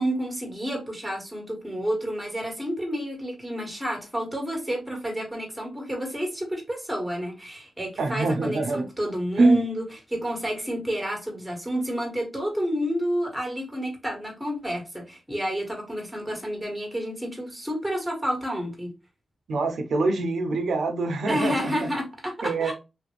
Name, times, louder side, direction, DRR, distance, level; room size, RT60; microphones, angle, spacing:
voice 1, 0.0-18.9 21.3-22.7, equal, 5° right, 1.3 m, -30 dB
voice 2, 8.0-8.9 9.4-9.6 19.5-21.9 22.4-22.7, right 3 dB, 80° right, 0.6 m, -24 dB
3.2 x 2.5 x 3.1 m
wide cardioid pair, 130°, 0 cm